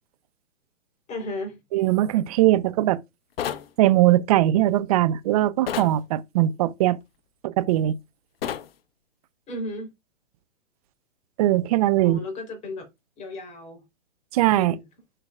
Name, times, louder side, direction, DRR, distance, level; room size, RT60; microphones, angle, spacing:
voice 1, 1.1-1.6 9.5-9.9 12.0-12.8 13.2-13.8 14.6-14.8, left 2 dB, 20° left, 3.6 m, -34 dB
voice 2, 1.7-3.0 3.8-7.0 7.4-7.9 11.4-12.2 14.3-14.8, right 14 dB, 30° right, 0.7 m, -20 dB
sound 1, 3.4-3.7 5.7-6.0 8.4-8.7, left 9 dB, 55° left, 0.9 m, -29 dB
9.8 x 5.6 x 2.4 m
hypercardioid pair, 140°, 35 cm